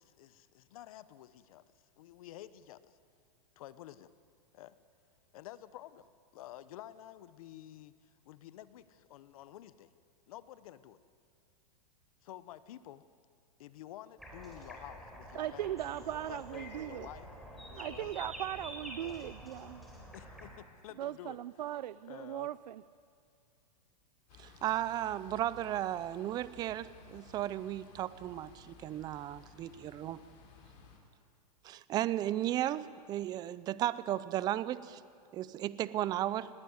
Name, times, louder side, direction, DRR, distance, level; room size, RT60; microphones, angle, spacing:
voice 1, 0.0-1.6 2.0-3.0 3.6-4.1 4.5-4.8 5.3-6.1 6.3-9.9 10.3-11.0 12.2-13.0 13.6-17.3 17.7-18.1 19.0-19.1 20.1-21.4 22.0-22.5, left 13 dB, 55° left, 15 dB, 0.9 m, -50 dB
sound 1, 14.2-20.5, equal, ahead, 3.8 m, -48 dB
voice 2, 15.4-17.1 17.8-19.8 21.0-22.8, right 12 dB, 85° right, 17 dB, 0.5 m, -39 dB
sound 2, 24.3-31.0, left 5 dB, 40° left, 3.7 m, -57 dB
voice 3, 24.4-30.2 31.6-35.0 35.3-36.5, right 13 dB, 20° right, 17 dB, 0.5 m, -35 dB
19.5 x 16.5 x 9.5 m, 2.2 s
hypercardioid pair, 150°, 21 cm